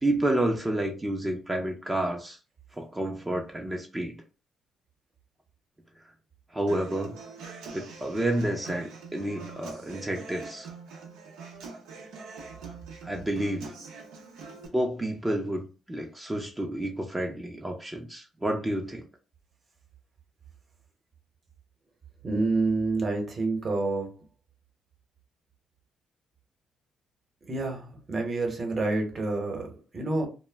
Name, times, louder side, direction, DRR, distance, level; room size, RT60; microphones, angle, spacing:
voice 1, 0.0-2.4 2.7-4.2 6.5-7.2 7.7-10.7 13.0-13.7 14.7-19.1, right 1 dB, 15° right, 0.5 m, -30 dB
Human voice / Acoustic guitar, 6.7-14.7, right 4 dB, 90° right, 0.6 m, -44 dB
voice 2, 22.2-24.1 27.5-30.3, right 3 dB, 40° right, 0.9 m, -28 dB
2.1 x 2.0 x 3.3 m
cardioid pair, 90°, 0 cm